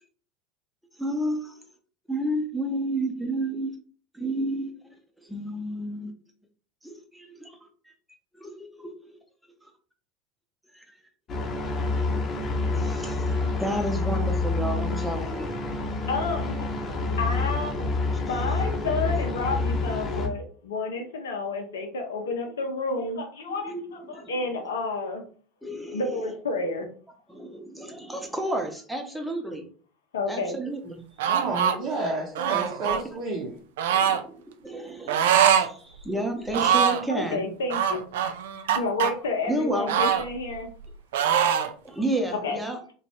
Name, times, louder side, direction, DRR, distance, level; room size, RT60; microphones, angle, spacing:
voice 1, 1.0-1.5 2.1-3.7 4.1-4.7 5.2-6.1 6.8-7.6 8.4-9.1 10.7-10.8 12.7-15.5 23.6-23.8 24.1-24.3 25.6-26.1 27.3-29.7 30.3-31.0 33.9-34.3 34.6-37.4 39.5-40.1 41.8-42.8, right 1 dB, 5° right, 2 dB, 0.8 m, -31 dB
sound 1, 11.3-20.3, left 3 dB, 35° left, 0.8 m, -28 dB
voice 2, 16.1-16.6 17.2-25.2 25.9-26.9 30.1-30.6 31.6-31.7 37.1-38.0 38.7-40.7 42.4-42.6, left 3 dB, 75° left, 4 dB, 0.5 m, -30 dB
sound 2, 31.2-31.8 32.4-33.0 33.8-34.2 35.1-35.7 36.0-36.1 36.5-37.1 37.7-39.1 39.9-40.9 41.1-41.7, right 8 dB, 70° right, 0.3 m, -23 dB
voice 3, 31.3-33.6, right 2 dB, 45° right, -3 dB, 0.7 m, -30 dB
2.9 x 2.3 x 3.0 m, 0.43 s
figure-of-eight pair, 75°, 0 cm